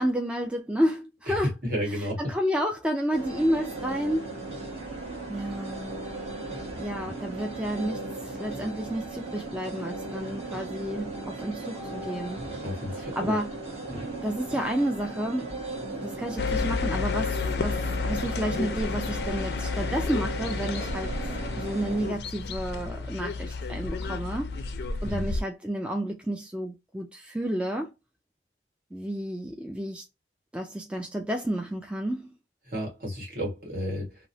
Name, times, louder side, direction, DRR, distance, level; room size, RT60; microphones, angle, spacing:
voice 1, 0.0-1.5 1.9-4.4 5.3-6.0 6.8-12.4 13.2-13.5 14.2-15.6 15.9-21.1 21.6-24.5 25.0-27.9 28.9-30.1 30.5-32.3, equal, 5° right, 0.3 m, -31 dB
voice 2, 1.6-2.3 7.0-7.1 12.6-13.4 13.9-14.1 25.0-25.3 32.7-34.3, equal, 50° right, 1.4 m, -32 dB
sound 1, 3.1-22.1, right 2 dB, 35° right, 1.0 m, -37 dB
sound 2, 16.4-25.4, left 4 dB, 65° left, 0.4 m, -31 dB
2.9 x 2.0 x 2.6 m
head